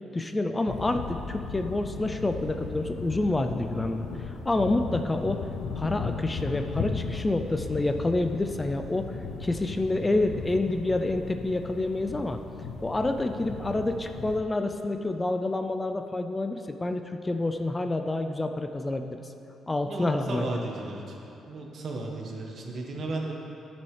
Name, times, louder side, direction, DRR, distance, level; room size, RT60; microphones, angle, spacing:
voice 1, 0.1-4.0 4.5-5.5 5.7-12.4 12.8-19.2 19.7-20.7, left 2 dB, 20° left, 6 dB, 0.4 m, -28 dB
sound 1, 0.6-14.4, left 5 dB, 80° left, 0.6 m, -37 dB
voice 2, 19.8-21.2 21.5-23.3, right 2 dB, 55° right, 0 dB, 1.3 m, -35 dB
11.5 x 7.0 x 3.3 m, 2.9 s
cardioid pair, 90°, 0 cm